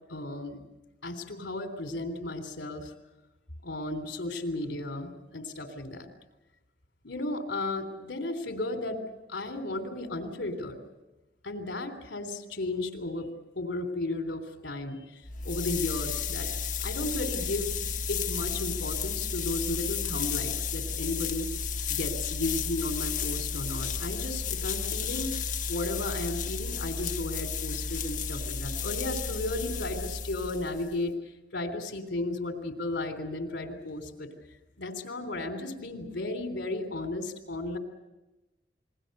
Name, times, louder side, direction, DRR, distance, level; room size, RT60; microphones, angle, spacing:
voice 1, 0.1-0.6 1.0-2.9 3.6-6.1 7.0-9.0 9.3-10.8 11.4-16.5 16.8-17.7 18.1-21.5 21.9-25.3 25.7-31.1 31.5-34.3 34.8-37.8, left 2 dB, 70° left, 6 dB, 3.4 m, -34 dB
sound 1, 15.2-31.0, left 6 dB, 45° left, 1.2 m, -33 dB
28.5 x 21.0 x 6.7 m, 1.0 s
head